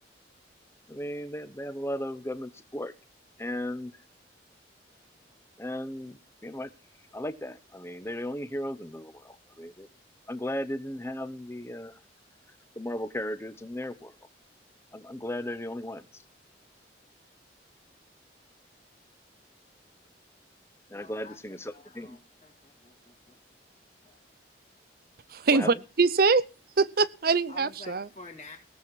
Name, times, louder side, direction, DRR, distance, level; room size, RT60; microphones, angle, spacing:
voice 1, 0.9-2.9 3.4-3.9 5.6-6.7 7.1-9.9 10.3-11.9 12.8-14.1 14.9-16.1 20.9-22.2 25.5-25.7, left 1 dB, 15° left, 12 dB, 1.0 m, -36 dB
voice 2, 20.9-23.4 24.0-24.2 27.5-28.6, left 3 dB, 35° left, -4 dB, 2.4 m, -50 dB
voice 3, 25.3-26.4 26.8-28.1, right 4 dB, 55° right, 18 dB, 0.7 m, -23 dB
18.0 x 7.8 x 6.1 m, 0.33 s
head